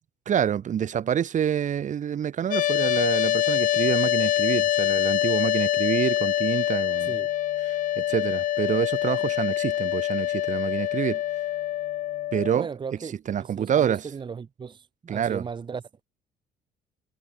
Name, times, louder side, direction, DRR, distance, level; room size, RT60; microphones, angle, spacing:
voice 1, 0.3-7.2 7.6-11.2 12.3-12.7 13.3-14.0 15.1-15.4, right 9 dB, 45° right, 2.2 m, -27 dB
sound 1, 2.5-12.6, left 13 dB, 50° left, 0.4 m, -25 dB
voice 2, 12.5-16.0, right 6 dB, 30° right, 0.9 m, -37 dB
cardioid pair, 110°, 17 cm